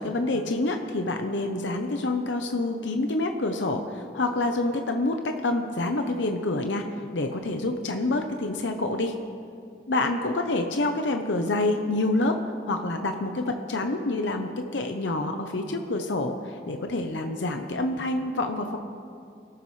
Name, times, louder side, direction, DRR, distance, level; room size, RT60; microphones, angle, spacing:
voice 1, 0.0-6.8 7.1-9.1 9.9-12.4 12.7-18.8, left 2 dB, 85° left, 4 dB, 0.8 m, -27 dB
24.0 x 13.5 x 3.3 m, 2.5 s
head